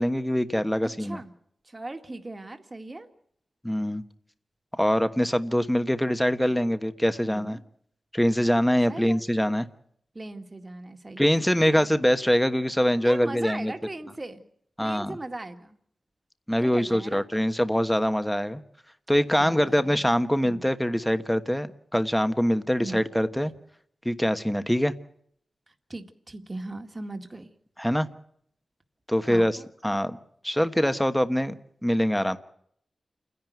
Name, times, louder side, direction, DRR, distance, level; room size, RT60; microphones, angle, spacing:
voice 1, 0.0-1.2 3.6-4.0 4.8-7.6 8.1-9.7 11.2-13.7 14.8-15.1 16.5-18.6 19.1-23.5 24.0-24.9 27.8-28.1 29.1-29.6 29.8-30.2 30.4-31.5 31.8-32.4, equal, 5° left, 1.2 m, -24 dB
voice 2, 1.0-1.3 1.6-3.1 7.2-7.6 8.9-9.2 10.1-11.9 13.0-14.4 14.8-15.8 16.6-17.3 19.3-20.1 20.4-20.6 22.8-23.0 23.4-23.5 25.7-27.5 29.2-29.7, right 2 dB, 30° right, 2.0 m, -39 dB
29.0 x 11.0 x 9.3 m
cardioid pair, 60°, 0 cm